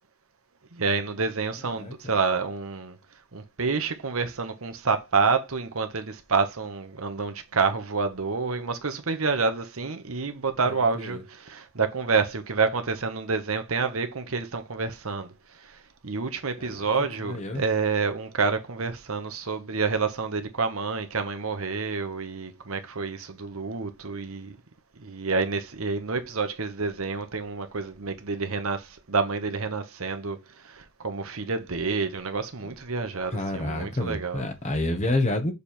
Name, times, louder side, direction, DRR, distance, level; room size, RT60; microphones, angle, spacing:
voice 1, 0.7-3.0 3.3-15.3 15.6-24.6 25.0-34.4, right 4 dB, 70° right, 1.1 m, -28 dB
voice 2, 1.8-2.1 10.7-11.2 16.6-16.9 17.2-17.6 32.6-32.8 33.3-35.5, left 1 dB, 30° left, 1.2 m, -29 dB
6.8 x 3.5 x 4.4 m
head